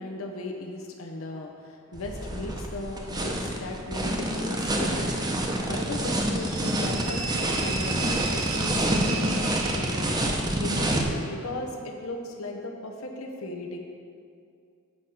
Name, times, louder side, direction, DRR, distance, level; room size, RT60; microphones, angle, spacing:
voice 1, 0.0-13.8, left 2 dB, 80° left, 2 dB, 0.9 m, -37 dB
sound 1, 1.9-11.0, right 1 dB, 20° right, 0.7 m, -27 dB
sound 2, 6.4-10.5, right 5 dB, 65° right, 0.8 m, -35 dB
8.6 x 4.9 x 5.8 m, 2.3 s
head